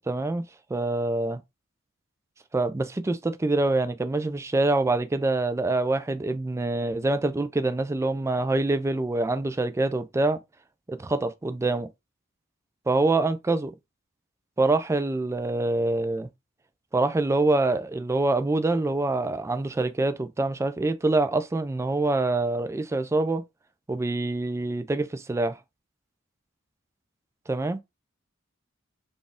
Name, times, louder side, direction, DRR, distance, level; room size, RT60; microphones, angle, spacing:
voice 1, 0.1-0.4 0.7-1.4 2.5-10.4 10.9-11.9 12.9-13.7 14.6-16.3 16.9-23.4 23.9-25.6 27.5-27.8, right 2 dB, 15° right, 0.3 m, -25 dB
4.1 x 2.4 x 3.5 m
head